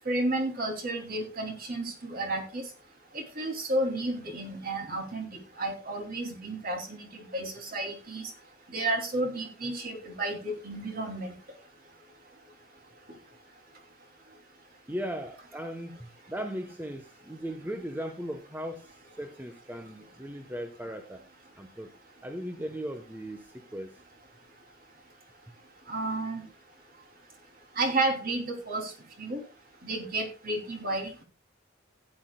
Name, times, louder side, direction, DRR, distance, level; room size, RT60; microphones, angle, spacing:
voice 1, 0.1-2.6 3.1-8.3 8.7-11.3 25.9-26.4 27.8-28.9 29.2-29.4 29.8-31.2, right 2 dB, 50° right, 2.7 m, -32 dB
voice 2, 14.9-21.2 21.6-22.0 22.2-23.9, equal, 10° right, 0.8 m, -38 dB
16.0 x 9.6 x 2.2 m
head